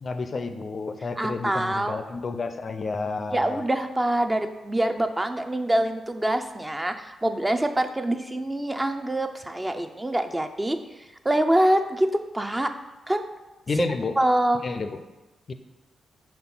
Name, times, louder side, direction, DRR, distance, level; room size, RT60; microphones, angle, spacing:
voice 1, 0.0-3.6 13.7-14.1 14.6-15.0 15.5-15.6, left 4 dB, 50° left, 9 dB, 0.4 m, -30 dB
voice 2, 1.2-2.0 3.3-10.8 11.2-12.7 13.1-13.3 13.8-13.9 14.2-14.6, right 1 dB, 15° right, 7 dB, 0.5 m, -25 dB
4.3 x 4.3 x 5.5 m, 1.1 s
cardioid pair, 70°, 0 cm